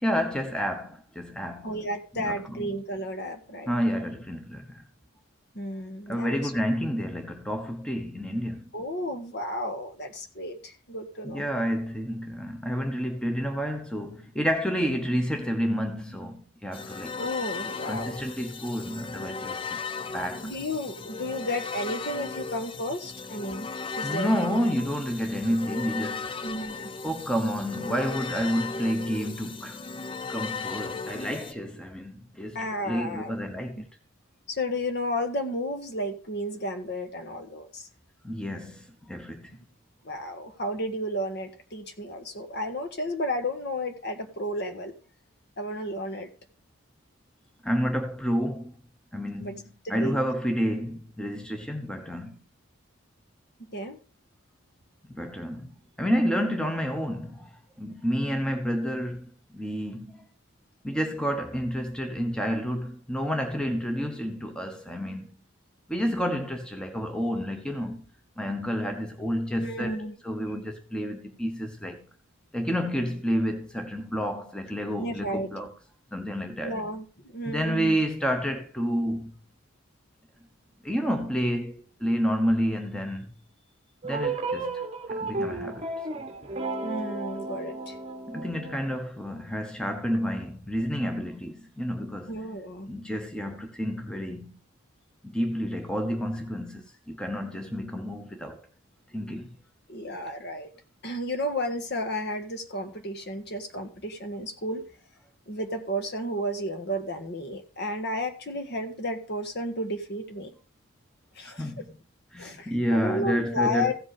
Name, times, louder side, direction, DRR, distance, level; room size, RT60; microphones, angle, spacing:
voice 1, 0.0-1.7 2.2-2.7 3.7-4.8 6.1-8.7 11.2-17.3 17.9-20.5 24.0-26.4 27.0-29.8 30.3-33.9 38.2-39.5 47.6-48.7 49.1-52.4 55.1-55.7 56.0-57.5 57.8-60.3 60.8-65.3 65.9-68.0 68.4-72.1 72.5-75.7 76.1-76.8 77.5-79.3 80.8-83.3 84.0-84.8 85.1-85.9 88.3-92.4 92.9-94.6 95.2-98.6 99.1-99.5 111.4-111.8 112.3-113.9, equal, 5° left, 1.0 m, -30 dB
voice 2, 1.6-4.1 5.5-6.5 8.7-11.4 17.2-18.2 20.4-23.7 24.0-24.6 26.4-26.9 32.5-33.3 33.7-33.8 34.5-37.9 40.0-44.9 45.6-46.3 49.4-49.5 49.8-50.2 53.7-54.0 69.5-70.1 74.9-75.5 76.6-78.0 86.8-88.0 92.3-92.9 99.9-100.7 101.0-104.8 105.5-110.5 111.3-111.7 112.4-113.9, equal, 50° left, 1.6 m, -32 dB
sound 1, 16.7-31.5, left 4 dB, 25° left, 0.4 m, -36 dB
sound 2, 84.0-89.0, right 3 dB, 30° right, 1.0 m, -33 dB
15.5 x 5.3 x 4.9 m
head